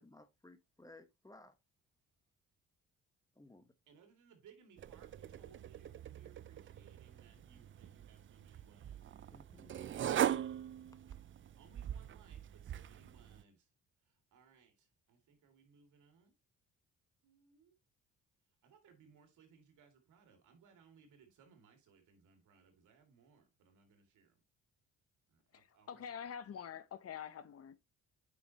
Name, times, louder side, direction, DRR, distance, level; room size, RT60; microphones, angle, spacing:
voice 1, 0.0-1.5 3.4-3.7 9.3-9.7, left 2 dB, 10° left, 1.1 m, -59 dB
voice 2, 3.9-9.1 11.6-13.7 14.0-16.3 17.2-17.7 18.6-24.4 25.3-26.0, right 6 dB, 80° right, 2.5 m, -65 dB
sound 1, 4.8-13.4, right 10 dB, 40° right, 0.5 m, -41 dB
voice 3, 25.5-27.8, left 8 dB, 50° left, 0.9 m, -46 dB
8.3 x 5.7 x 3.0 m
cardioid pair, 90°, 30 cm